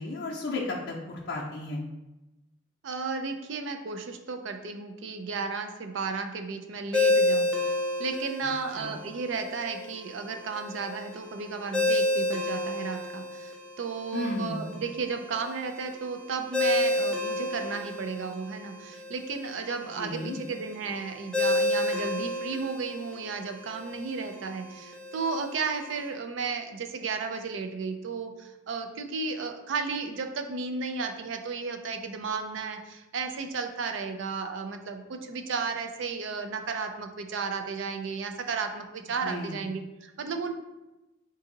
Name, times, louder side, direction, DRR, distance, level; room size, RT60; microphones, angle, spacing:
voice 1, 0.0-1.8 8.8-9.0 14.1-14.7 20.0-20.4 39.2-39.6, left 2 dB, 70° left, -4 dB, 0.5 m, -33 dB
voice 2, 2.8-7.5 8.0-40.5, right 4 dB, 85° right, 6 dB, 0.4 m, -34 dB
Ringtone, 6.9-26.1, left 2 dB, 5° left, 0.4 m, -31 dB
3.9 x 2.6 x 3.8 m, 1.0 s
head